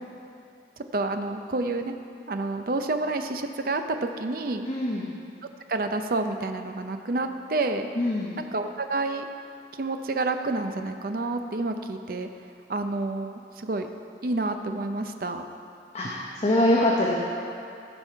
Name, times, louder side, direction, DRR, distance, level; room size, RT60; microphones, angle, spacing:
voice 1, 0.9-1.9 2.3-4.7 5.7-7.9 8.4-9.3 9.8-12.3 12.7-13.9 14.2-15.4, right 2 dB, 50° right, 7 dB, 0.5 m, -29 dB
voice 2, 4.7-5.1 7.9-8.3 15.9-17.1, left 1 dB, 35° left, -4 dB, 0.8 m, -24 dB
16.0 x 5.5 x 4.5 m, 2.6 s
head